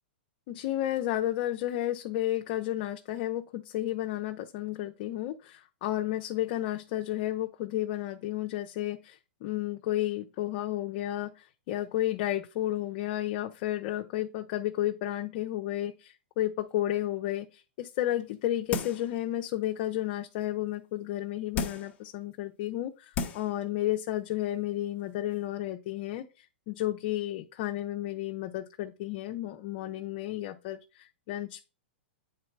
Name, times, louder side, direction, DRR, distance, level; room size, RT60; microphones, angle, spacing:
voice 1, 0.5-31.6, left 13 dB, 45° left, 4 dB, 0.6 m, -32 dB
sound 1, 18.7-19.1 19.6-19.7 21.5-22.0 22.7-22.8 23.1-23.6 23.9-24.0, left 5 dB, 25° left, 1.1 m, -33 dB
8.6 x 3.9 x 4.6 m, 0.31 s
hypercardioid pair, 145°, 6 cm